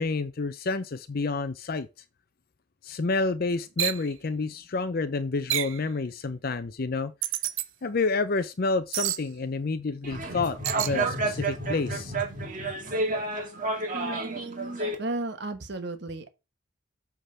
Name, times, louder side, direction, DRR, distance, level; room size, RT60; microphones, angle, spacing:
voice 1, 0.0-1.9 2.8-7.1 7.8-12.1, left 3 dB, 50° left, 0.5 m, -29 dB
sound 1, 3.8-4.0 5.5-5.8 7.2-7.7 8.9-9.2 10.6-11.0, right 13 dB, 80° right, 0.5 m, -28 dB
sound 2, 10.0-14.9, right 2 dB, 40° right, 1.8 m, -30 dB
voice 2, 15.0-16.3, right 2 dB, 60° right, 1.2 m, -33 dB
8.0 x 3.7 x 5.6 m
head